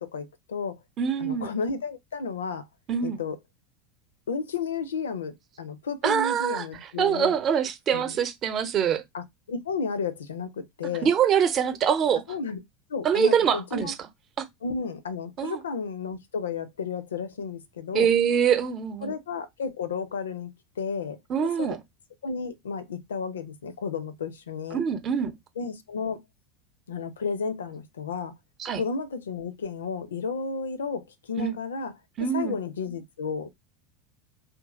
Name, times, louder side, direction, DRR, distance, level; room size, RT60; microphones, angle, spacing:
voice 1, 0.0-0.8 1.2-2.6 3.0-3.4 4.3-7.4 7.9-8.2 9.1-11.1 12.3-12.6 12.9-13.9 14.6-18.1 19.0-20.5 20.8-21.8 22.2-24.8 25.6-26.2 26.9-28.3 28.7-31.9 32.3-33.5, left 5 dB, 75° left, 0.5 m, -32 dB
voice 2, 1.0-1.5 2.9-3.2 6.0-6.6 7.0-9.0 11.0-12.2 13.0-13.9 14.4-14.5 15.4-15.6 17.9-19.1 21.3-21.8 24.7-25.4 28.6-28.8 31.4-31.5 32.2-32.6, right 8 dB, 40° right, 0.7 m, -24 dB
2.7 x 2.6 x 3.6 m
figure-of-eight pair, 80°, 0 cm